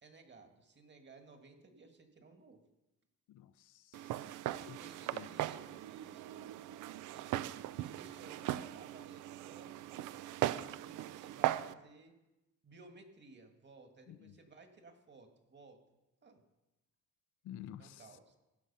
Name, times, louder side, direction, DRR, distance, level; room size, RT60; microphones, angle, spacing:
voice 1, 0.0-2.6 4.4-6.5 7.1-12.1 12.6-15.8 16.2-16.4 17.8-18.4, right 3 dB, 35° right, 2.0 m, -58 dB
voice 2, 3.3-4.2 4.7-4.8 5.1-5.3 14.1-14.3 17.4-18.0, left 11 dB, 85° left, 0.6 m, -50 dB
Walk footsteps, 3.9-11.7, right 14 dB, 85° right, 0.5 m, -39 dB
17.0 x 6.4 x 5.5 m
cardioid pair, 90°, 30 cm